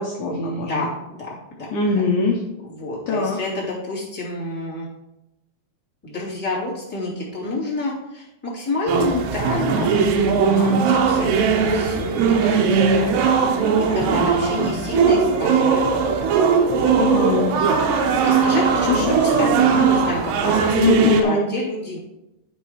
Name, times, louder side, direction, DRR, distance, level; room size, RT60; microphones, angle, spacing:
voice 1, 0.0-0.9 1.7-2.4 3.1-3.4 16.9-17.5 18.9-19.2 20.7-21.5, left 4 dB, 90° left, -1 dB, 1.7 m, -21 dB
voice 2, 0.6-2.0 2.6-4.9 6.0-13.1 13.8-15.9 18.3-22.0, left 2 dB, 5° left, -8 dB, 2.3 m, -28 dB
sound 1, 8.9-21.2, right 5 dB, 80° right, 3.1 m, -19 dB
11.5 x 4.6 x 4.7 m, 0.93 s
omnidirectional pair, 5.0 m